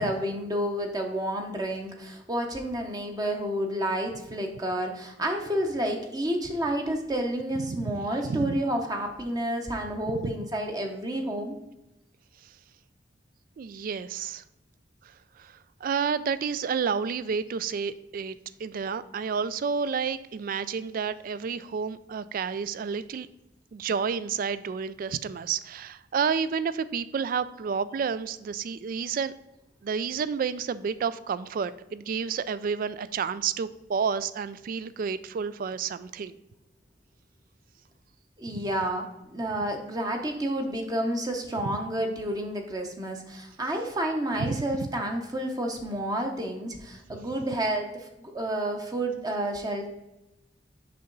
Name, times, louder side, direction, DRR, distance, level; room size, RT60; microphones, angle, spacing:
voice 1, 0.0-11.6 38.4-49.9, right 1 dB, 20° right, 3 dB, 0.7 m, -30 dB
voice 2, 7.7-8.6 10.2-10.3 13.6-14.4 15.4-15.5 15.8-23.3 23.7-29.3 29.8-36.4 38.5-38.6 44.4-44.9, right 6 dB, 50° right, 15 dB, 0.3 m, -30 dB
6.7 x 5.4 x 3.9 m, 0.95 s
head